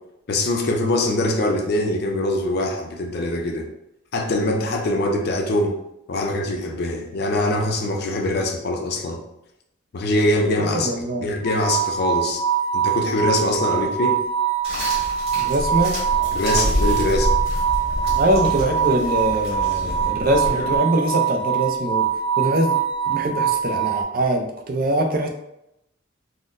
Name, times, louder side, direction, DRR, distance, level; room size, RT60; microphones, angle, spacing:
voice 1, 0.3-3.7 4.1-5.8 6.1-9.2 9.9-10.9 11.2-12.4 12.7-14.2 16.3-17.3, left 1 dB, 50° left, 3 dB, 0.4 m, -23 dB
voice 2, 10.7-11.3 15.4-16.0 18.1-22.1 22.4-22.8 23.1-25.3, right 1 dB, 45° right, 3 dB, 0.4 m, -23 dB
sound 1, 11.4-24.0, right 8 dB, 15° left, 0.7 m, -23 dB
sound 2, 14.6-20.8, equal, 30° right, 1.3 m, -27 dB
3.9 x 2.1 x 2.5 m, 0.84 s
head